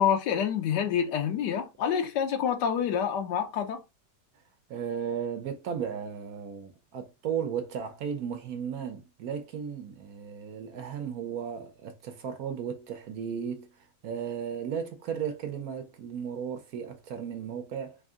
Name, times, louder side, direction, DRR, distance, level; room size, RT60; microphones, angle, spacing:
voice 1, 0.0-3.8, left 8 dB, 80° left, 1.3 m, -27 dB
voice 2, 4.7-18.0, right 7 dB, 65° right, 1.0 m, -35 dB
3.5 x 2.6 x 3.5 m
omnidirectional pair, 1.8 m